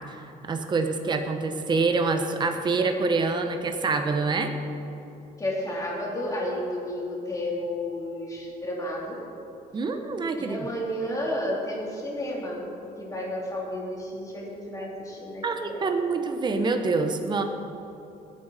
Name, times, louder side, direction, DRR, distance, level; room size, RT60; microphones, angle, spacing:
voice 1, 0.4-4.5 9.7-10.7 15.4-17.4, right 4 dB, 30° right, 6 dB, 0.9 m, -26 dB
voice 2, 5.4-9.2 10.4-12.6 13.0-16.1, left 1 dB, 20° left, -4 dB, 3.1 m, -32 dB
19.5 x 9.0 x 4.1 m, 3.0 s
cardioid pair, 135°, 16 cm